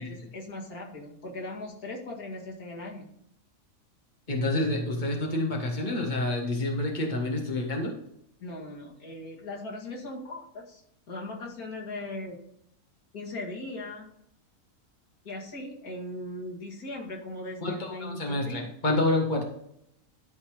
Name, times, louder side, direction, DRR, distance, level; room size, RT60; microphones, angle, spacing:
voice 1, 0.0-3.1 8.4-12.4 13.1-14.1 15.2-18.6, left 2 dB, 85° left, -2 dB, 2.6 m, -39 dB
voice 2, 4.3-7.9 17.6-19.4, left 2 dB, 30° left, 1 dB, 1.9 m, -28 dB
12.5 x 4.2 x 5.0 m, 0.74 s
omnidirectional pair, 1.5 m